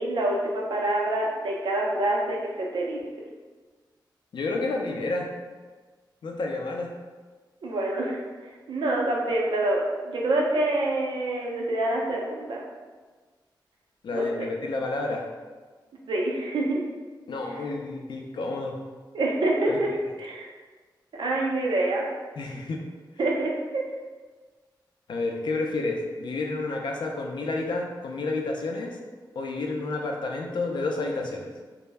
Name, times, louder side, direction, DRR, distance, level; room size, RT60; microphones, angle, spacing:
voice 1, 0.0-3.0 7.6-8.2 8.7-12.6 14.1-14.5 16.1-16.8 19.1-19.9 20.2-20.5 21.1-22.0 23.2-23.8, right 2 dB, 80° right, -2 dB, 0.5 m, -26 dB
voice 2, 4.3-5.3 6.2-6.9 14.0-15.2 17.3-18.8 19.7-19.8 22.4-22.8 25.1-29.0 29.4-31.5, left 3 dB, 70° left, 1 dB, 0.4 m, -30 dB
2.1 x 2.0 x 3.3 m, 1.4 s
cardioid pair, 75°, 8 cm